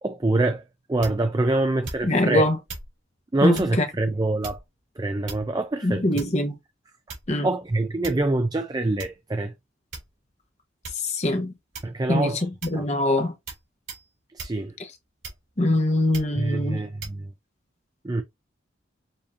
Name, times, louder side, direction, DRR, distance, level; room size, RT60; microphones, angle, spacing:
voice 1, 0.0-0.6 0.9-2.5 3.3-4.6 5.0-6.0 7.4-9.5 11.8-12.4 12.8-12.9 14.3-14.7 16.4-17.3 18.0-18.2, right 2 dB, 20° right, 0.4 m, -25 dB
sound 1, 1.0-1.4 1.8-2.3 2.7-2.9 3.5-3.8 4.4-4.8 5.3-5.7 6.2-6.5 7.1-7.5 8.0-8.3 9.0-9.1 9.9-10.3 10.8-11.1 11.7-12.1 12.6-12.9 13.5-13.6 13.9-14.1 14.4-14.6 15.2-15.6 16.1-16.4 17.0-17.2, right 3 dB, 85° right, 2.9 m, -39 dB
voice 2, 2.0-2.6 3.4-3.8 5.8-6.6 7.3-7.5 10.9-11.5 12.1-13.3 15.6-16.8, left 1 dB, 35° left, 1.0 m, -23 dB
6.7 x 2.7 x 2.7 m
head